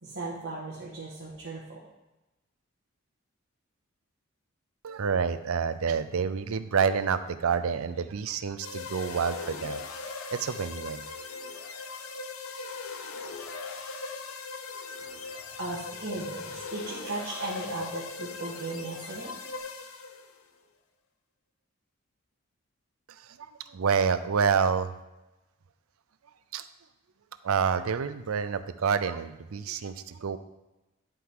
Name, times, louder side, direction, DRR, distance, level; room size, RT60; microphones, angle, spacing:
voice 1, 0.0-1.8 15.6-19.3, right 2 dB, 50° right, -6 dB, 1.6 m, -37 dB
voice 2, 4.8-9.8 10.3-11.0 23.1-24.9 26.5-26.7 27.4-30.4, right 6 dB, 75° right, 12 dB, 0.5 m, -28 dB
sound 1, 8.6-20.4, left 4 dB, 70° left, 0.7 m, -39 dB
11.5 x 4.8 x 3.7 m, 1.0 s
head